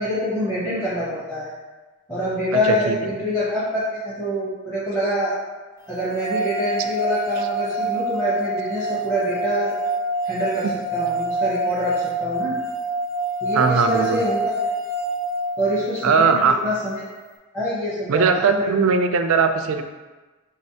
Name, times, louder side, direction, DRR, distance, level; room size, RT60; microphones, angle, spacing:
voice 1, 0.0-1.5 2.1-5.3 5.9-9.7 10.2-10.7 10.9-12.6 13.4-14.5 15.6-17.0 17.5-18.7, equal, 15° left, -11 dB, 0.9 m, -25 dB
sound 1, 5.9-16.1, right 2 dB, 15° right, 0.5 m, -26 dB
voice 2, 13.5-14.2 16.0-16.6 18.1-19.8, right 5 dB, 75° right, 7 dB, 0.4 m, -19 dB
5.1 x 3.2 x 2.8 m, 1.2 s
head